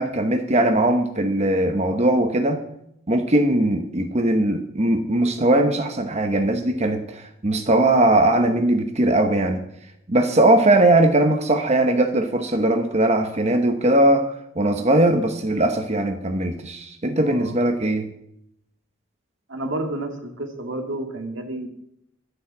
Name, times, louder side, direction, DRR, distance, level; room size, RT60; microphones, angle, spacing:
voice 1, 0.0-2.6 3.1-9.6 10.1-14.3 14.6-18.1, right 1 dB, 35° right, 6 dB, 1.0 m, -20 dB
voice 2, 17.2-17.6 19.5-21.7, right 1 dB, 80° right, 5 dB, 2.2 m, -30 dB
11.5 x 9.8 x 7.4 m, 0.78 s
head